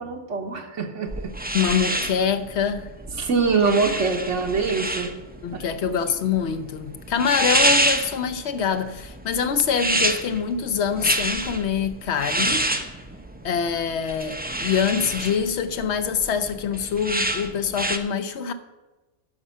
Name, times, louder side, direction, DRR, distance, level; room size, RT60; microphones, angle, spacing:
voice 1, 0.0-1.3 3.1-5.1 5.5-5.6 6.2-6.3, right 4 dB, 80° right, 1.5 m, -24 dB
sound 1, 1.1-18.0, right 1 dB, 15° right, 0.4 m, -28 dB
voice 2, 1.5-2.9 5.4-12.7 13.4-18.5, left 7 dB, 65° left, 1.0 m, -25 dB
11.5 x 5.4 x 7.3 m
omnidirectional pair, 1.2 m